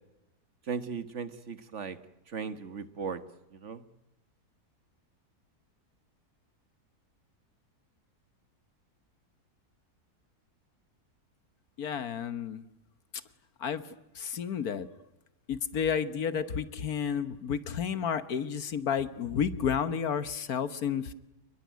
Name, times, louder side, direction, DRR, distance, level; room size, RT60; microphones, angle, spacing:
voice 1, 0.7-2.0 2.3-3.2 3.6-3.8, right 5 dB, 50° right, 11 dB, 1.7 m, -36 dB
voice 2, 11.8-12.6 13.6-13.8 14.2-14.9 15.5-21.1, left 7 dB, 70° left, 13 dB, 1.6 m, -31 dB
29.5 x 21.0 x 9.4 m, 0.96 s
omnidirectional pair, 1.7 m